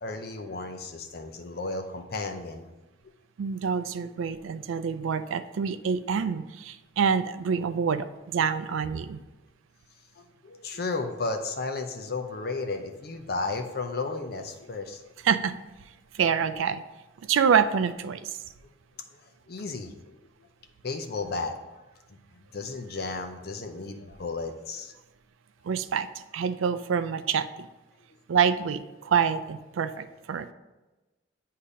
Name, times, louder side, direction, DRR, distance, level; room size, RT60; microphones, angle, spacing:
voice 1, 0.0-2.6 10.2-15.0 18.6-18.7 19.1-19.2 19.5-20.2 20.8-21.5 22.1-22.2 22.5-24.9, left 3 dB, 50° left, 5 dB, 0.6 m, -33 dB
voice 2, 3.4-9.2 15.2-15.6 16.1-16.8 17.2-18.3 25.6-26.1 26.3-27.7 28.3-30.5, right 7 dB, 90° right, 12 dB, 0.4 m, -26 dB
8.3 x 2.8 x 4.9 m, 1.1 s
head